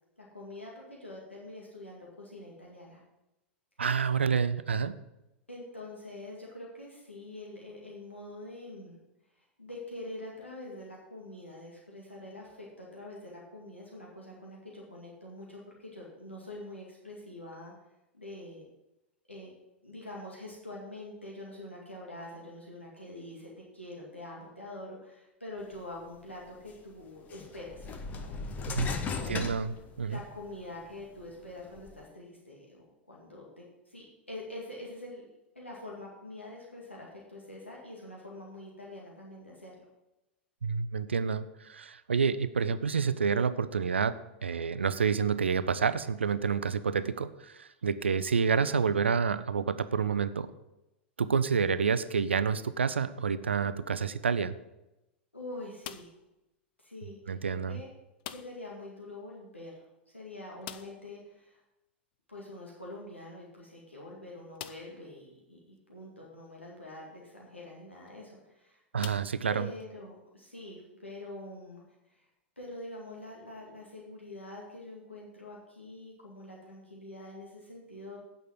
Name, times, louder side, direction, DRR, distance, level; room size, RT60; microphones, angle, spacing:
voice 1, 0.2-3.0 5.5-9.0 9.4-17.7 18.1-18.7 19.3-19.5 19.8-27.9 28.2-29.5 30.0-35.2 35.6-39.9 55.3-56.1 56.8-57.9 58.3-61.6 62.3-68.8 69.5-72.3 72.6-78.2, left 1 dB, 90° left, -3 dB, 2.1 m, -45 dB
voice 2, 3.8-4.9 28.7-28.9 29.3-30.2 40.6-44.2 44.4-50.5 51.2-54.5 57.3-57.8 68.9-69.7, right 6 dB, 75° right, 13 dB, 0.5 m, -28 dB
sound 1, 26.3-26.4 27.3-30.4 30.9-31.9, left 5 dB, 25° left, 1.0 m, -37 dB
sound 2, 55.8-56.4 58.2-58.8 59.0-59.1 59.4-59.5 60.6-61.2 62.9-63.0 63.6-63.7 64.5-65.1 65.8-65.9 67.9-68.1 69.0-69.9, left 12 dB, 50° left, 0.5 m, -45 dB
9.2 x 5.4 x 7.5 m, 0.93 s
figure-of-eight pair, 95°, 6 cm